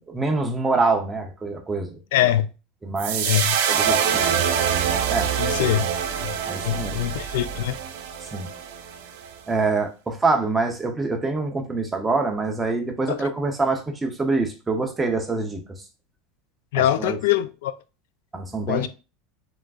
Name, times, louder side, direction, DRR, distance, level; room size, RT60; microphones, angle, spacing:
voice 1, 0.1-2.0 2.8-3.3 3.7-4.5 5.1-5.3 6.5-7.0 8.3-8.5 9.5-15.6 16.8-17.2 18.3-18.9, right 3 dB, 10° right, 0.8 m, -25 dB
voice 2, 2.1-2.5 3.2-3.6 5.4-5.9 6.2-6.3 6.6-7.8 13.1-13.3 16.7-17.7 18.7-18.9, left 12 dB, 80° left, 0.4 m, -23 dB
sound 1, 3.0-9.3, right 8 dB, 75° right, 0.8 m, -25 dB
5.0 x 3.6 x 2.4 m
supercardioid pair, 150°, 0 cm